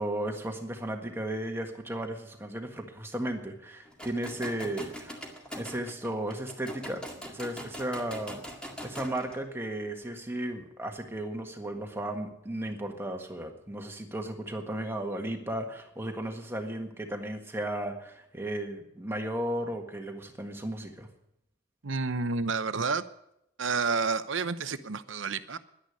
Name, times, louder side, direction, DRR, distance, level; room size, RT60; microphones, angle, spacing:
voice 1, 0.0-5.2 5.6-7.0 7.2-8.4 8.8-21.1, right 1 dB, 10° right, 3 dB, 1.6 m, -35 dB
sound 1, 3.9-9.4, equal, 5° left, 2.0 m, -42 dB
voice 2, 21.8-23.0 23.6-25.6, right 4 dB, 65° right, 12 dB, 0.8 m, -30 dB
11.5 x 10.5 x 9.7 m, 0.79 s
head